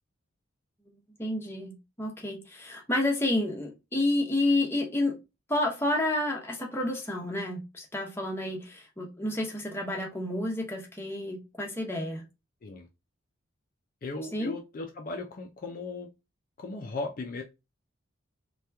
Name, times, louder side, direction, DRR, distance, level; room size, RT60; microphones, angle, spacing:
voice 1, 1.2-5.1 5.5-12.2 14.3-14.5, left 1 dB, 10° left, 0.7 m, -30 dB
voice 2, 14.0-16.1 16.6-17.4, left 3 dB, 45° left, 0.4 m, -37 dB
2.8 x 2.3 x 3.3 m
head